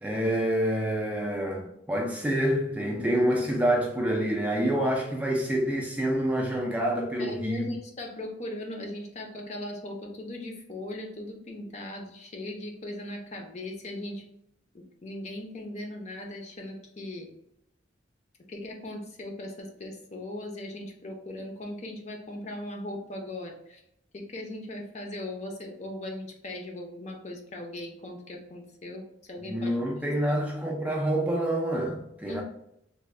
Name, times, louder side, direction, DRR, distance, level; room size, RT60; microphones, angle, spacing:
voice 1, 0.0-7.6 29.4-32.4, right 1 dB, 10° right, 0.4 m, -27 dB
voice 2, 7.2-14.2 14.7-17.3 18.5-23.8 24.1-29.8 30.3-30.4 32.3-32.4, left 1 dB, 40° left, 0.6 m, -39 dB
3.4 x 2.2 x 3.2 m
head